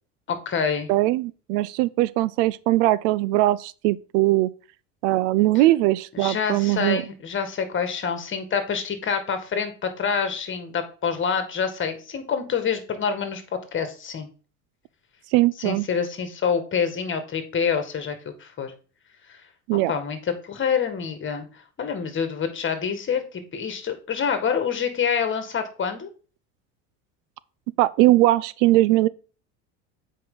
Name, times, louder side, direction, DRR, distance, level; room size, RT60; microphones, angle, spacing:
voice 1, 0.3-0.9 6.1-13.4 13.7-14.3 15.6-18.7 19.3-19.4 19.7-20.2 20.4-26.1, left 6 dB, 30° left, 1.9 m, -27 dB
voice 2, 0.9-4.5 5.0-7.0 15.3-15.9 19.7-19.9 27.8-29.1, right 17 dB, 70° right, 0.6 m, -20 dB
7.7 x 5.1 x 3.9 m
supercardioid pair, 95°, 37 cm